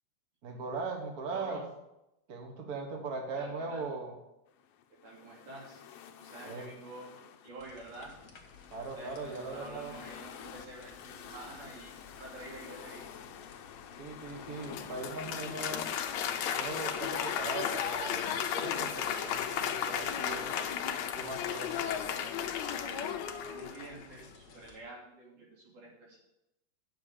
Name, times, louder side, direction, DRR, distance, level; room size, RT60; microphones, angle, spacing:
voice 1, 0.4-1.6 2.3-4.1 6.4-6.7 8.7-9.9 14.0-15.9 16.5-20.5 21.2-22.1, right 3 dB, 45° right, 3 dB, 1.2 m, -39 dB
voice 2, 1.3-1.7 3.4-4.0 5.0-8.2 8.9-13.1 22.6-23.2 23.5-26.2, right 2 dB, 75° right, -3 dB, 4.4 m, -48 dB
sound 1, 4.5-22.5, left 9 dB, 90° left, 1.3 m, -50 dB
sound 2, 7.6-24.8, left 4 dB, 50° left, 1.2 m, -57 dB
Applause, 14.5-24.1, left 8 dB, 70° left, 1.8 m, -34 dB
9.7 x 6.5 x 6.8 m, 0.89 s
omnidirectional pair, 3.6 m